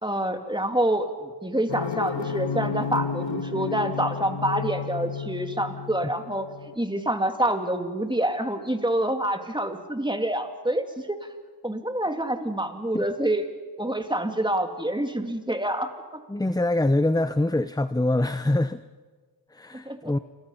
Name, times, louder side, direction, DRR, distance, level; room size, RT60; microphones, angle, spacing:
voice 1, 0.0-6.5 6.8-11.2 11.6-13.4 13.8-16.2 19.7-20.1, right 1 dB, 10° right, 5 dB, 2.7 m, -27 dB
sound 1, 1.7-6.7, left 6 dB, 85° left, 1.4 m, -32 dB
voice 2, 16.3-18.8 19.5-20.2, left 2 dB, 10° left, 12 dB, 0.7 m, -24 dB
29.5 x 22.5 x 5.7 m, 1.4 s
cardioid pair, 40°, 42 cm